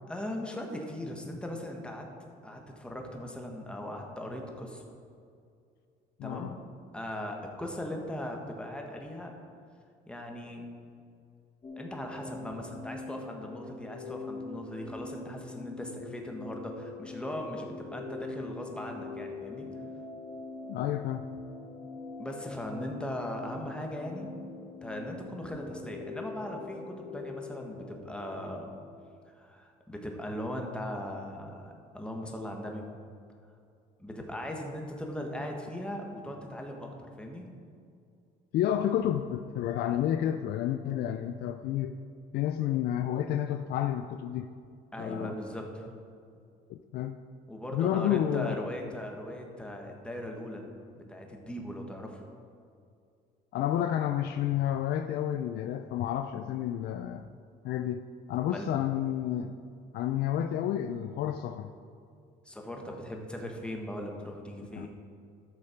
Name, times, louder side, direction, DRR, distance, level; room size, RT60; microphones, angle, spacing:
voice 1, 0.1-2.1 2.4-4.8 6.2-6.6 6.9-9.3 10.1-10.7 11.8-19.7 22.2-24.3 24.8-28.7 29.3-32.8 34.0-36.9 37.2-37.5 44.9-45.9 47.5-50.7 50.9-52.2 58.5-58.7 62.4-64.9, left 1 dB, 5° left, 1 dB, 1.4 m, -39 dB
voice 2, 6.2-6.5 20.7-21.3 38.5-41.9 42.3-44.5 45.0-45.4 46.7-47.2 47.7-48.7 53.5-57.2 57.6-59.5 59.9-61.7 64.7-64.9, left 11 dB, 70° left, 7 dB, 0.4 m, -30 dB
sound 1, 11.6-28.7, left 3 dB, 30° left, 1.3 m, -43 dB
12.5 x 6.5 x 4.5 m, 2.4 s
cardioid pair, 110°, 17 cm